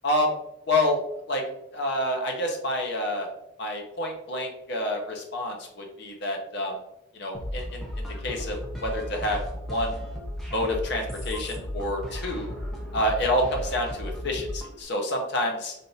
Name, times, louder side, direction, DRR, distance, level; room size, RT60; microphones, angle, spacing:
voice 1, 0.0-0.3 0.7-1.0 1.3-1.4 1.7-3.3 3.6-6.8 7.1-9.4 9.7-10.0 10.5-12.5 12.9-15.7, left 1 dB, 55° left, 2 dB, 0.7 m, -28 dB
sound 1, 7.3-14.8, equal, ahead, 0.5 m, -35 dB
3.4 x 2.6 x 2.7 m, 0.82 s
head